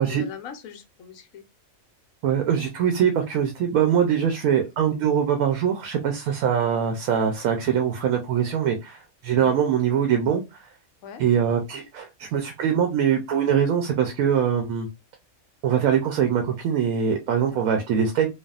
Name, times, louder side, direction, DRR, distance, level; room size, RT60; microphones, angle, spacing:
voice 1, 0.0-1.4 9.3-9.6 11.0-11.2 17.5-17.8, left 7 dB, 75° left, 1.0 m, -41 dB
voice 2, 2.2-10.7 11.2-14.9 15.6-18.3, right 8 dB, 80° right, 1.0 m, -23 dB
3.3 x 2.2 x 2.3 m
omnidirectional pair, 1.5 m